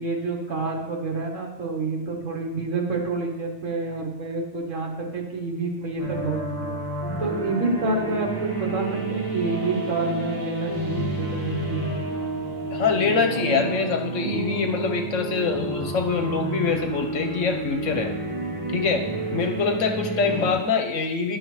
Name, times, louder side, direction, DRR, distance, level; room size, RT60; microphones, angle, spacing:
voice 1, 0.0-6.7 7.2-11.9, right 3 dB, 70° right, 0 dB, 1.6 m, -28 dB
sound 1, 6.0-20.5, right 2 dB, 15° left, 1.7 m, -30 dB
voice 2, 12.7-18.1 18.7-21.4, left 5 dB, 70° left, 4 dB, 1.2 m, -24 dB
10.5 x 6.4 x 3.1 m, 1.0 s
omnidirectional pair, 1.4 m